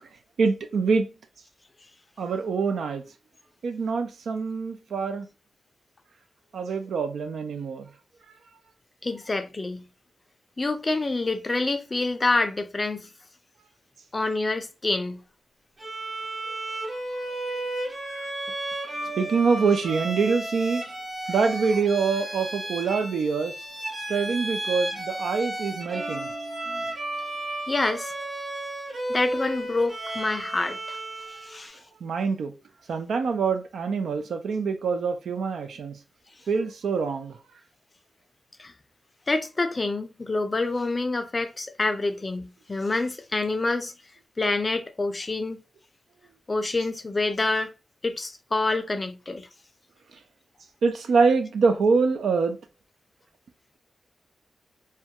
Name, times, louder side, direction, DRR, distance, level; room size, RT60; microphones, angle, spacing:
voice 1, 0.4-1.1 2.2-3.0 3.6-5.3 6.5-7.9 16.5-16.6 17.1-17.3 17.9-18.3 19.2-20.8 21.3-23.6 24.1-26.3 32.0-32.5 32.9-36.0 36.5-37.4 50.8-52.6, right 5 dB, 90° right, 0.3 m, -25 dB
voice 2, 9.0-9.8 10.6-13.1 14.1-15.2 26.7-26.8 27.7-28.1 29.1-31.0 31.4-31.8 38.6-38.7 39.3-43.9 44.4-45.6 46.5-47.7 48.0-49.5, left 3 dB, 30° left, 0.4 m, -27 dB
Bowed string instrument, 15.8-31.6, right 1 dB, 35° right, 0.8 m, -33 dB
2.3 x 2.1 x 2.7 m
wide cardioid pair, 85°, 0 cm